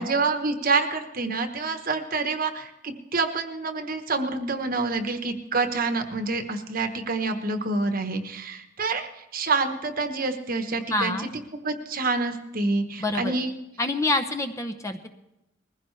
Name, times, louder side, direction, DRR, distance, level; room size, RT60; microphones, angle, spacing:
voice 1, 0.0-11.3 11.6-13.5, right 3 dB, 45° right, 7 dB, 1.1 m, -27 dB
voice 2, 10.9-11.3 13.0-13.3 13.8-15.1, left 2 dB, 15° left, 8 dB, 0.7 m, -26 dB
21.0 x 15.5 x 3.3 m, 0.92 s
head